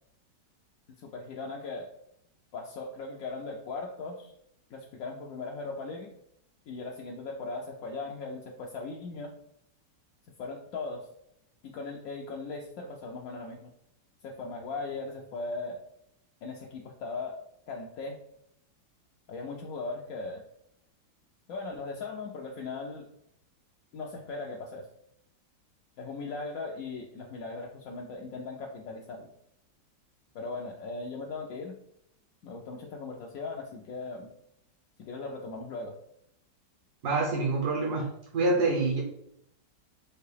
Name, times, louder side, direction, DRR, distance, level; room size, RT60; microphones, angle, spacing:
voice 1, 1.0-1.9 2.5-4.3 4.7-6.1 6.7-9.3 10.4-11.1 11.6-13.7 14.2-15.8 16.4-17.4 17.7-18.2 19.3-20.4 21.5-23.1 23.9-24.9 26.0-29.3 30.3-31.8 32.4-34.3 35.1-35.9, left 3 dB, 70° left, -1 dB, 0.8 m, -38 dB
voice 2, 37.0-38.1 38.3-39.0, right 3 dB, 65° right, -1 dB, 1.2 m, -26 dB
4.6 x 2.8 x 3.3 m, 0.75 s
omnidirectional pair, 2.0 m